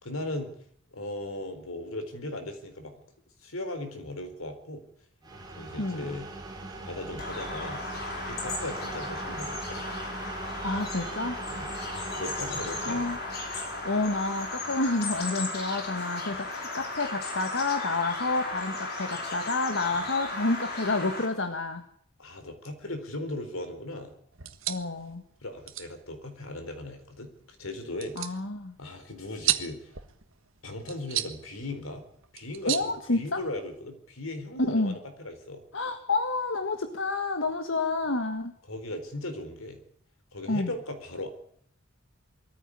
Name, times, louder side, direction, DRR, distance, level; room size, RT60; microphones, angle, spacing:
voice 1, 0.0-0.6 0.9-2.9 3.4-4.8 5.6-6.2 6.8-9.8 11.5-11.7 12.2-13.2 22.2-24.1 25.4-27.3 27.6-28.4 28.8-29.9 30.6-32.0 32.3-35.6 38.7-39.8 40.3-41.3, left 1 dB, 85° left, 7 dB, 4.2 m, -38 dB
sound 1, 5.2-16.9, right 2 dB, 20° right, 4.5 m, -41 dB
Bird vocalization bird call bird song, 7.2-21.3, left 2 dB, 50° left, 4.9 m, -36 dB
voice 2, 10.6-11.4 12.9-13.2 13.8-21.8 24.7-25.2 28.1-28.7 32.6-33.4 34.6-35.0 35.7-38.5 40.5-40.7, left 2 dB, 65° left, 6 dB, 1.7 m, -29 dB
sound 2, 24.3-33.8, right 12 dB, 75° right, 1.5 m, -36 dB
22.0 x 14.5 x 9.9 m, 0.67 s
head